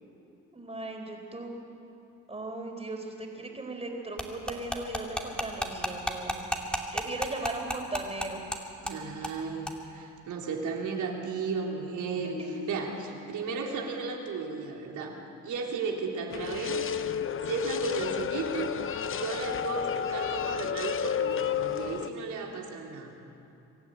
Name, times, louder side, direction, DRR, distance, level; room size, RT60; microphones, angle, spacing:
voice 1, 0.5-1.5 2.3-6.3 6.9-8.4 12.2-12.5 18.1-18.2, right 2 dB, 20° right, 2 dB, 4.2 m, -37 dB
sound 1, 4.2-8.6 8.9-9.0 9.2-9.4 9.7-9.8, equal, 5° left, 2.5 m, -32 dB
voice 2, 8.8-12.4 12.7-15.2 15.4-16.9 17.4-18.7 19.1-23.1, right 4 dB, 75° right, 0 dB, 3.6 m, -34 dB
sound 2, 16.3-22.1, left 8 dB, 45° left, 0.7 m, -31 dB
24.5 x 12.5 x 9.2 m, 2.9 s
cardioid pair, 90°, 30 cm